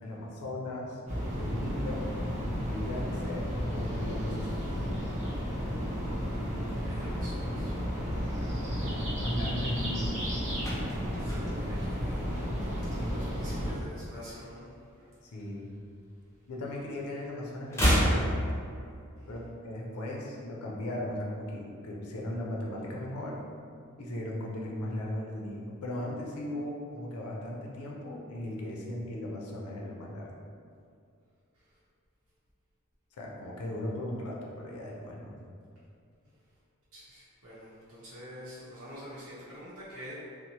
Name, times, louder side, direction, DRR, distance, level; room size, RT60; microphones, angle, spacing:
voice 1, 0.0-1.0 1.4-2.1 2.7-3.5 3.7-4.8 8.6-10.1 15.2-15.7 16.5-18.4 19.3-23.4 24.0-30.4 33.1-35.3, left 1 dB, 75° left, -2 dB, 0.5 m, -37 dB
sound 1, 1.1-13.7, equal, 30° right, 0.6 m, -33 dB
voice 2, 6.7-7.7 11.2-14.8 19.2-19.4 31.5-31.8 36.9-40.1, equal, 65° right, -11 dB, 0.8 m, -47 dB
sound 2, 10.5-12.9 13.2-13.5 13.8-15.2 15.5-16.9 17.1-19.2 19.5-19.6, equal, 10° left, 0.5 m, -31 dB
2.8 x 2.0 x 2.8 m, 2.4 s
head